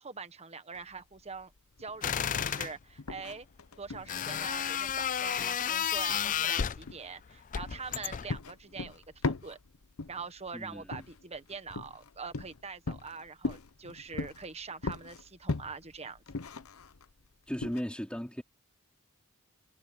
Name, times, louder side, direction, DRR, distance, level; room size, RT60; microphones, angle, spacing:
voice 1, 0.0-1.5 1.8-3.5 3.8-9.6 10.1-16.2, right 4 dB, 30° right, 1.4 m, -44 dB
sound 1, 0.7-17.8, left 3 dB, 80° left, 0.9 m, -40 dB
sound 2, 2.0-2.7 4.1-6.9 7.5-8.4, left 9 dB, 40° left, 0.4 m, -32 dB
voice 2, 10.5-11.1 17.5-18.4, equal, 5° left, 4.0 m, -37 dB
head